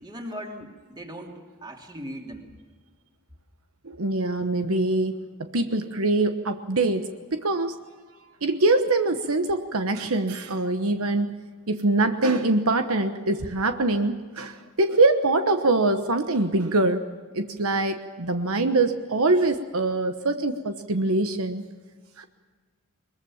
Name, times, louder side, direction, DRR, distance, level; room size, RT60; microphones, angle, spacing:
voice 1, 0.0-2.5, equal, 20° right, 2 dB, 3.0 m, -39 dB
voice 2, 3.8-7.8 8.4-11.4 11.7-17.1 17.3-21.6 22.2-22.3, right 2 dB, 70° right, 7 dB, 1.2 m, -24 dB
22.5 x 22.0 x 7.3 m, 1.5 s
head